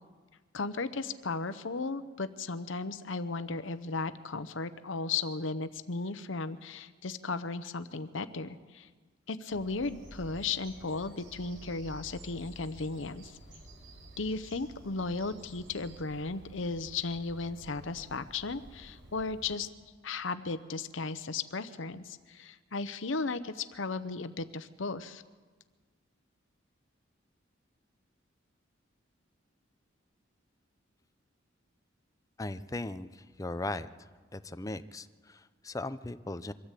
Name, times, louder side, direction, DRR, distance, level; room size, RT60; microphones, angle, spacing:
voice 1, 0.5-8.9 9.3-13.4 14.2-19.7 20.0-25.2, left 3 dB, 80° left, 12 dB, 0.9 m, -35 dB
Bird vocalization bird call bird song, 9.5-19.5, right 1 dB, 70° right, 4.3 m, -51 dB
voice 2, 32.4-33.9 34.3-36.5, left 2 dB, 15° left, 12 dB, 0.6 m, -38 dB
24.0 x 13.5 x 8.3 m, 1.4 s
head